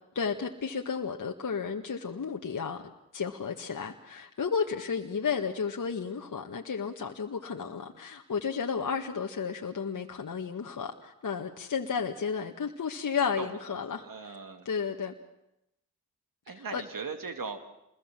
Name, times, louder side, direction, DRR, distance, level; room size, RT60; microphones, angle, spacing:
voice 1, 0.1-2.8 3.1-14.3 14.6-15.1 16.7-16.8, left 6 dB, 55° left, 2 dB, 1.7 m, -33 dB
voice 2, 13.3-14.7 16.5-17.6, right 4 dB, 60° right, 7 dB, 2.5 m, -39 dB
27.0 x 21.5 x 7.6 m, 0.86 s
supercardioid pair, 40°, 37 cm